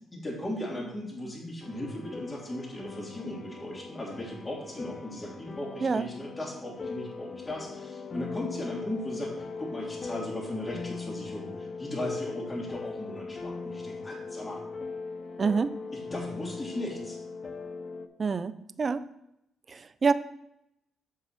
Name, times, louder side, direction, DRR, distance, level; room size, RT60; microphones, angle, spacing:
voice 1, 0.1-14.6 15.9-17.2, left 1 dB, 20° left, -5 dB, 3.2 m, -37 dB
sound 1, 1.6-18.1, left 4 dB, 40° left, 0.6 m, -39 dB
voice 2, 15.4-15.7 18.2-19.0 19.7-20.1, right 5 dB, 40° right, 14 dB, 0.4 m, -27 dB
7.4 x 5.9 x 4.5 m, 0.81 s
cardioid pair, 90°, 0 cm